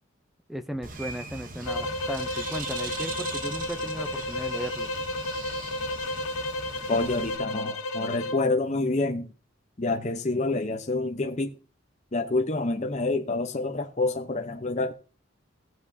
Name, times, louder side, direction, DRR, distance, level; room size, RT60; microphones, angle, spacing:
voice 1, 0.5-4.9, equal, ahead, 0.5 m, -36 dB
Bird, 0.8-7.4, right 4 dB, 40° right, 0.9 m, -40 dB
sound 1, 1.6-8.4, left 1 dB, 80° left, 0.9 m, -32 dB
voice 2, 6.9-9.3 9.8-11.5 12.1-14.9, left 2 dB, 35° left, 0.7 m, -27 dB
17.0 x 7.7 x 2.7 m
head